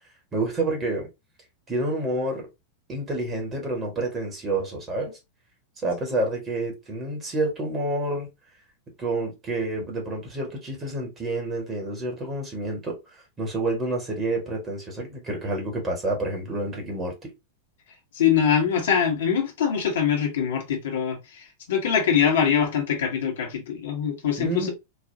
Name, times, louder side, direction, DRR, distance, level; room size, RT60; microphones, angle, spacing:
voice 1, 0.3-1.1 1.7-2.5 2.9-5.2 5.8-8.3 9.0-13.0 13.4-17.3 24.4-24.7, right 2 dB, 25° right, 1.5 m, -28 dB
voice 2, 18.1-24.7, left 8 dB, 60° left, 1.1 m, -23 dB
4.0 x 2.4 x 2.7 m
figure-of-eight pair, 90°, 0 cm